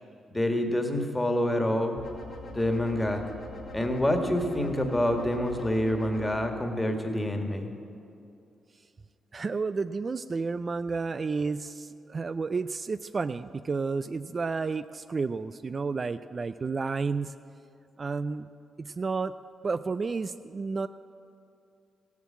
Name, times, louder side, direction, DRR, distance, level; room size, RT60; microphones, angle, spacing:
voice 1, 0.3-2.0 2.5-3.2 3.7-7.7, left 1 dB, 15° left, 4 dB, 1.7 m, -27 dB
sound 1, 2.0-6.4, left 2 dB, 70° left, 2.5 m, -43 dB
voice 2, 9.3-17.3 18.0-18.5 18.8-19.3 19.6-20.9, right 4 dB, 45° right, 12 dB, 0.3 m, -31 dB
15.5 x 7.2 x 7.4 m, 2.5 s
supercardioid pair, 55°, 0 cm